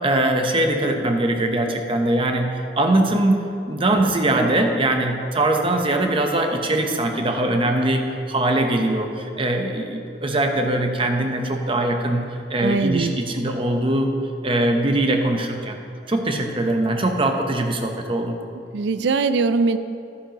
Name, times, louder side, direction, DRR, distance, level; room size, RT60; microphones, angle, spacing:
voice 1, 0.0-3.4 3.6-14.2 14.4-15.8 16.1-18.3, right 1 dB, 30° right, 4 dB, 0.8 m, -21 dB
voice 2, 12.6-13.2 18.7-19.8, right 4 dB, 75° right, 11 dB, 0.4 m, -21 dB
11.5 x 9.8 x 2.9 m, 2.6 s
head